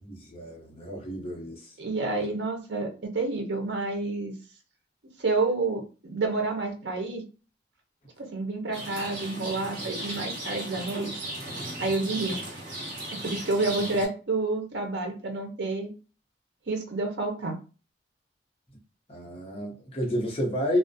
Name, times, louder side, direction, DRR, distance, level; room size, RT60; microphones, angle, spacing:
voice 1, 0.0-1.7 19.1-20.8, equal, 30° left, 0.7 m, -31 dB
voice 2, 1.8-4.3 5.2-7.2 8.2-11.2 11.8-12.4 13.1-15.9 16.7-17.6, right 3 dB, 70° right, 0.6 m, -29 dB
Rain, 8.7-14.1, right 1 dB, 50° right, 1.1 m, -36 dB
2.4 x 2.0 x 2.6 m
head